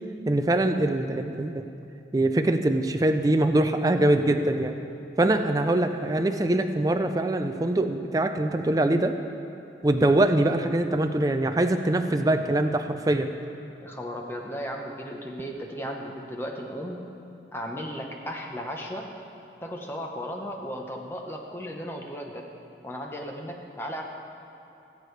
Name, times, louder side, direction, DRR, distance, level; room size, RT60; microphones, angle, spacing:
voice 1, 0.3-1.6 2.1-4.7 5.2-9.1 9.8-13.3, right 1 dB, 20° right, 7 dB, 0.4 m, -23 dB
voice 2, 13.8-17.0 17.5-19.1 19.6-22.5 22.8-24.0, equal, 15° left, 1 dB, 0.8 m, -35 dB
19.0 x 8.2 x 3.3 m, 2.7 s
head